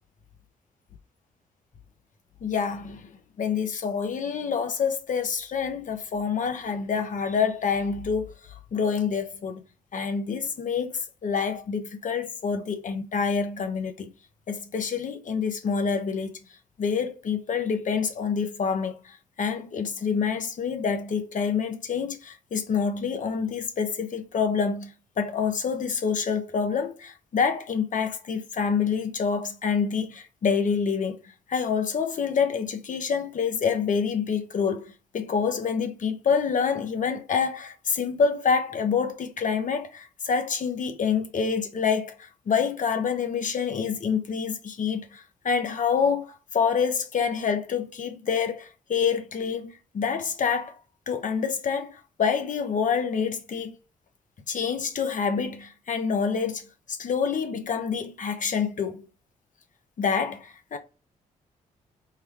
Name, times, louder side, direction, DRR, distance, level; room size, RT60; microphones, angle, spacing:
voice 1, 2.4-3.1 3.4-8.3 8.7-9.6 9.9-14.1 14.5-16.4 16.8-31.2 31.5-50.8 51.1-53.8 54.5-56.6 56.9-59.1 60.0-60.8, left 6 dB, 55° left, 0.8 m, -27 dB
3.8 x 2.2 x 3.2 m
supercardioid pair, 50°, 16 cm